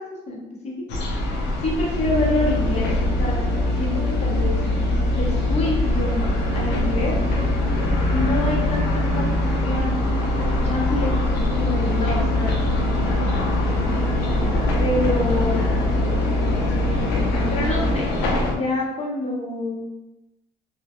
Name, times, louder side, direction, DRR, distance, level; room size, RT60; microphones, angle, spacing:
sound 1, 0.9-18.5, left 2 dB, 80° left, 0.5 m, -25 dB
voice 1, 1.6-4.6 5.1-6.3 6.5-7.1 8.1-9.3 9.6-10.0 10.6-12.6 14.8-15.7 17.5-18.1 18.5-19.8, left 1 dB, 40° left, -3 dB, 0.8 m, -27 dB
sound 2, 2.0-17.9, left 1 dB, 70° right, 0.6 m, -24 dB
2.2 x 2.1 x 2.8 m, 0.97 s
cardioid pair, 110°, 17 cm